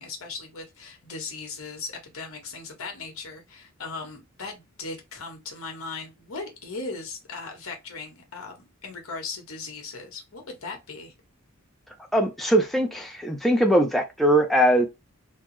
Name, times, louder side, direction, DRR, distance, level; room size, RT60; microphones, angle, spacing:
voice 1, 0.0-11.1, left 4 dB, 75° left, 1.2 m, -38 dB
voice 2, 12.1-14.9, right 1 dB, ahead, 0.3 m, -21 dB
3.4 x 2.0 x 3.0 m
head